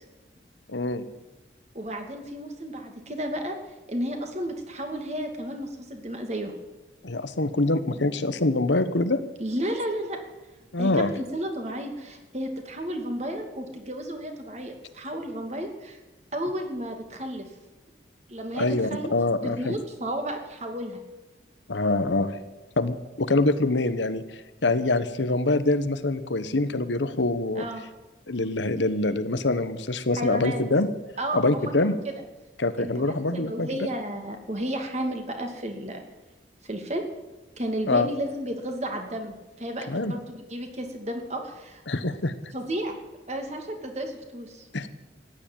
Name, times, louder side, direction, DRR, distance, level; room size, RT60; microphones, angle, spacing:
voice 1, 0.7-1.0 7.0-9.2 10.7-11.1 18.5-19.8 21.7-22.4 22.8-24.2 24.6-27.6 28.3-30.9 31.3-31.9 32.6-33.7 37.9-38.1 39.9-40.1 41.9-42.3 44.7-44.9, left 2 dB, 90° left, 11 dB, 1.2 m, -24 dB
voice 2, 1.7-3.6 3.9-6.5 9.4-10.2 10.8-16.0 16.3-17.5 18.3-19.1 19.4-21.0 27.5-27.8 30.1-30.6 31.2-32.1 32.8-36.0 36.6-37.0 37.6-41.8 42.5-43.0 43.3-44.7, right 1 dB, 40° right, 4 dB, 2.5 m, -32 dB
15.0 x 9.9 x 9.2 m, 1.1 s
head